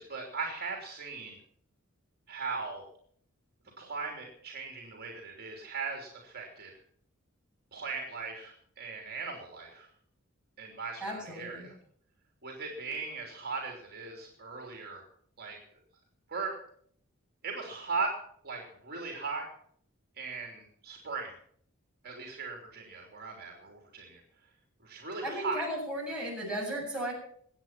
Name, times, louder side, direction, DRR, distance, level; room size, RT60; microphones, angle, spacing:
voice 1, 0.0-1.4 2.3-2.8 3.8-6.7 7.7-9.9 10.6-11.7 12.4-15.0 15.4-15.6 16.3-16.6 17.4-18.1 18.4-19.5 20.2-21.3 22.0-24.2 24.8-25.6, right 4 dB, 45° right, 1 dB, 3.2 m, -38 dB
voice 2, 11.0-11.7 25.2-27.1, right 1 dB, 5° right, -4 dB, 7.8 m, -35 dB
22.5 x 9.1 x 5.9 m, 0.62 s
head